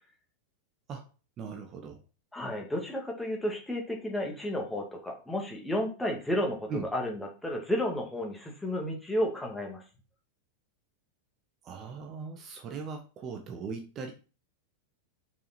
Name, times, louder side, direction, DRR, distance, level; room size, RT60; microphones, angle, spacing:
voice 1, 1.4-2.0 6.7-6.8 11.6-14.1, right 5 dB, 30° right, 4 dB, 1.3 m, -39 dB
voice 2, 2.3-9.8, equal, 5° left, 0 dB, 2.2 m, -32 dB
6.9 x 5.8 x 4.4 m, 0.34 s
figure-of-eight pair, 90°, 0 cm